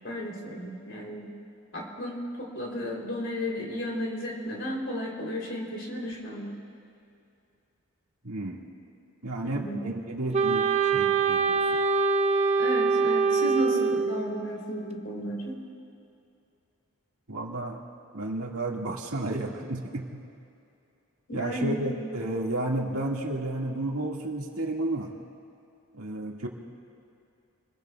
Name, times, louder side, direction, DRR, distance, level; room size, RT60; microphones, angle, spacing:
voice 1, 0.0-1.3 1.7-6.5 9.4-9.8 12.6-15.6 21.3-21.8, equal, 55° left, -2 dB, 3.3 m, -33 dB
voice 2, 8.2-8.7 9.2-11.8 17.3-17.8 18.1-20.2 21.3-25.1 25.9-26.5, right 2 dB, 85° right, -1 dB, 2.0 m, -32 dB
Wind instrument woodwind instrument, 10.3-14.3, right 4 dB, 30° right, 0.6 m, -24 dB
28.0 x 21.0 x 2.3 m, 2.6 s
head